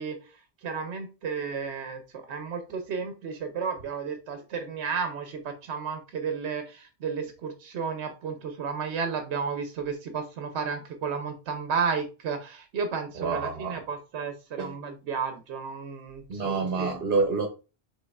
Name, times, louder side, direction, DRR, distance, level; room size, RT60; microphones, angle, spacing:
voice 1, 0.0-17.0, right 5 dB, 85° right, 0.9 m, -33 dB
voice 2, 13.2-13.7 14.6-14.7 16.3-17.5, right 4 dB, 65° right, 1.0 m, -27 dB
5.2 x 3.6 x 2.3 m
omnidirectional pair, 1.1 m